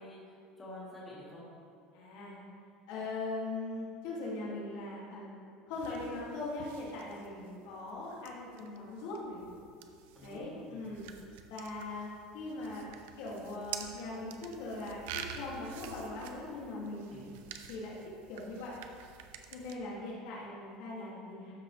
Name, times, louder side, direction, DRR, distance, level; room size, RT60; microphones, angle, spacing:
voice 1, 0.0-1.4 10.1-10.9 17.1-17.3, left 1 dB, 15° left, -8 dB, 2.1 m, -48 dB
voice 2, 1.9-2.4 2.9-5.3 5.7-9.4 10.2-11.1 11.5-12.1 12.3-12.9 13.2-17.2 17.7-18.8 19.5-21.5, left 2 dB, 70° left, -5 dB, 2.3 m, -40 dB
sound 1, 5.7-19.8, right 8 dB, 90° right, 0.6 m, -48 dB
13.0 x 6.2 x 3.3 m, 2.4 s
cardioid pair, 160°, 0 cm